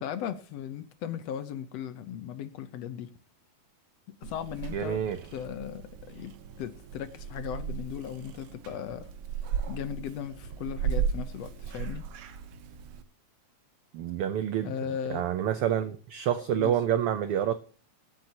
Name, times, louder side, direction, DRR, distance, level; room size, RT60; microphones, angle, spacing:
voice 1, 0.0-3.1 4.2-5.0 5.3-9.1 9.7-12.1 14.6-15.3 16.6-16.7, left 9 dB, 70° left, 1.7 m, -37 dB
Purr / Meow, 4.2-13.0, right 7 dB, 65° right, 1.9 m, -36 dB
voice 2, 4.7-5.2 13.9-14.7 15.1-17.5, right 10 dB, 90° right, 1.2 m, -28 dB
23.0 x 8.9 x 2.9 m
omnidirectional pair, 3.4 m